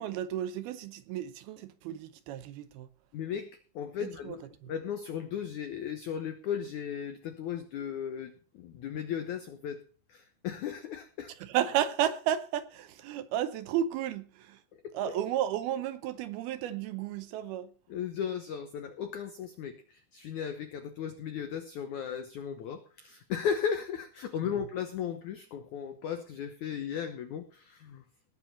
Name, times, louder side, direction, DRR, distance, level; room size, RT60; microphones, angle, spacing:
voice 1, 0.0-2.9 4.2-4.4 4.6-4.7 11.4-14.6 14.9-17.7, right 11 dB, 80° right, 2.4 m, -32 dB
voice 2, 3.1-3.5 3.7-4.4 4.7-9.8 10.1-11.3 14.8-15.1 17.9-28.0, left 8 dB, 80° left, 1.7 m, -36 dB
19.5 x 7.8 x 4.2 m
omnidirectional pair, 4.9 m